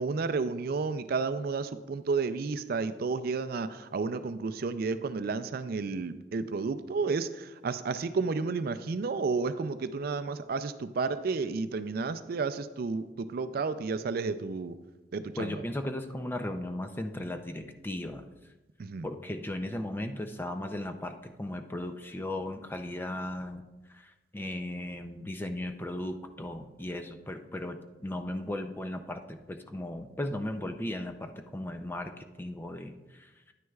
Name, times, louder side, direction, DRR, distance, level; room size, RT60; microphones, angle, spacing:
voice 1, 0.0-14.7 15.1-15.6 18.8-19.1, right 4 dB, 55° right, 12 dB, 0.4 m, -31 dB
voice 2, 15.4-18.3 19.0-23.7 23.9-24.0 24.3-33.3, left 1 dB, 10° left, 6 dB, 0.4 m, -36 dB
9.9 x 9.3 x 2.3 m, 1.1 s
head